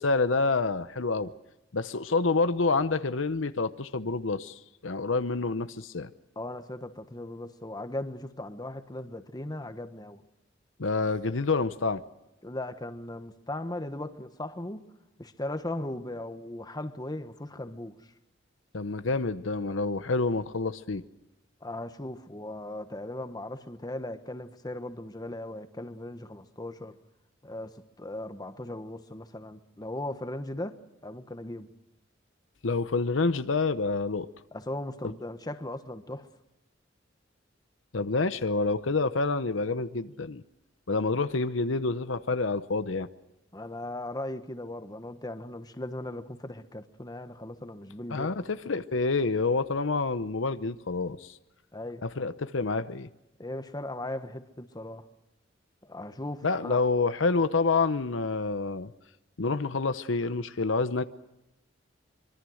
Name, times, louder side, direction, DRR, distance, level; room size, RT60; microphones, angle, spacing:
voice 1, 0.0-1.3 1.7-6.1 10.8-12.0 18.7-21.0 32.6-34.3 37.9-40.4 40.9-43.1 48.1-51.3 52.0-53.1 56.4-58.9 59.4-61.0, left 3 dB, 85° left, 0.9 m, -28 dB
voice 2, 6.3-10.2 12.4-14.8 15.2-18.0 21.6-27.0 27.4-31.7 34.5-36.3 43.5-48.3 51.7-52.0 53.4-55.1 55.8-56.8, left 1 dB, 20° left, 1.3 m, -38 dB
24.5 x 23.5 x 6.4 m
head